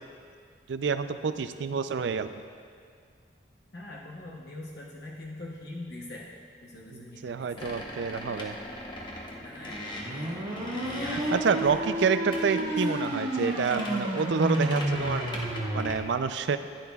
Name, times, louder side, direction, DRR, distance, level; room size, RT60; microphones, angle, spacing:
voice 1, 0.7-2.3 6.9-8.5 11.3-15.2 15.7-16.6, right 5 dB, 75° right, 11 dB, 0.4 m, -28 dB
voice 2, 3.7-6.3 6.6-8.1 9.4-9.8 10.1-11.4 11.7-11.9 12.5-13.0, left 1 dB, 55° left, -3 dB, 0.9 m, -43 dB
sound 1, 7.6-16.0, left 1 dB, 25° left, 0.9 m, -40 dB
sound 2, 9.9-15.9, right 1 dB, 30° right, 1.8 m, -31 dB
14.0 x 10.0 x 2.3 m, 2.1 s
head